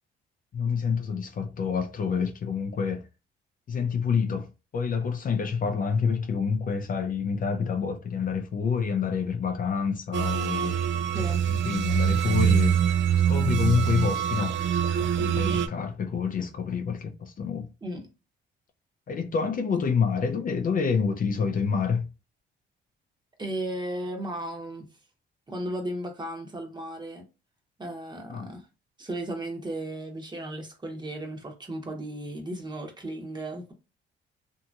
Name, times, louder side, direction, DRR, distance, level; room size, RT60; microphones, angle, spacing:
voice 1, 0.5-3.0 3.7-10.7 11.5-12.8 13.3-14.6 15.0-17.7 19.1-22.1 28.3-28.5, left 6 dB, 45° left, 0.5 m, -27 dB
sound 1, 10.1-15.7, right 9 dB, 70° right, 0.4 m, -24 dB
voice 2, 11.1-11.5 17.8-18.1 23.4-24.9 25.5-27.2 27.8-28.7 29.0-33.7, right 1 dB, 20° right, 1.0 m, -35 dB
2.8 x 2.7 x 2.3 m
cardioid pair, 90°, 20 cm